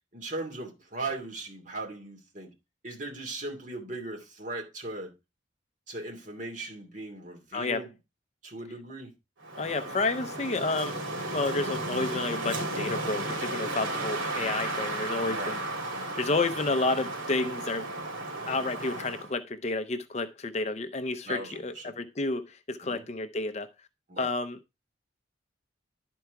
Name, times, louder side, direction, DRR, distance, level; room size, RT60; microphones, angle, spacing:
voice 1, 0.1-2.5 2.8-5.1 5.9-7.9 8.4-9.1 15.2-15.6 21.2-21.9 22.8-23.0 24.1-24.3, right 2 dB, 40° right, 2.5 m, -38 dB
Wind, 9.4-19.3, right 2 dB, 80° right, 2.5 m, -34 dB
voice 2, 9.6-11.0 11.3-15.6 16.2-17.8 18.5-23.7 24.2-24.6, left 3 dB, 35° left, 0.5 m, -30 dB
11.0 x 4.6 x 4.6 m
head